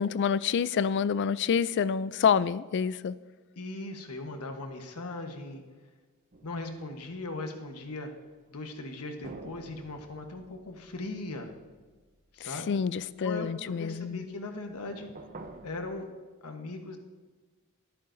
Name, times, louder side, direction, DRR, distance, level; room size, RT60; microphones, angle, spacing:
voice 1, 0.0-3.2 12.4-14.2, left 6 dB, 50° left, 18 dB, 0.3 m, -27 dB
voice 2, 3.6-5.6 6.4-8.1 8.5-11.5 12.3-12.9 13.2-15.1 15.6-16.1 16.4-17.0, left 2 dB, 90° left, 4 dB, 1.2 m, -39 dB
sound 1, 6.3-8.0 9.2-13.4 14.5-16.0, right 2 dB, 40° right, 0.8 m, -50 dB
21.5 x 9.4 x 2.7 m, 1.4 s
head